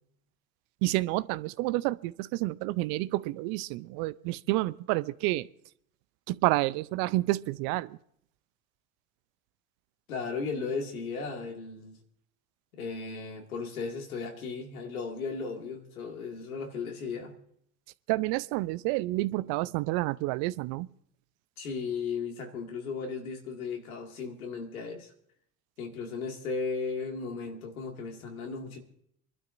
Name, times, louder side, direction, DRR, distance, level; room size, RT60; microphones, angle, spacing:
voice 1, 0.8-5.5 6.3-8.0 18.1-20.9, right 19 dB, 60° right, 0.6 m, -29 dB
voice 2, 10.1-12.0 12.7-17.4 21.6-25.1 25.8-28.8, left 4 dB, 85° left, 2.3 m, -36 dB
27.5 x 12.0 x 2.6 m
hypercardioid pair, 70°, 42 cm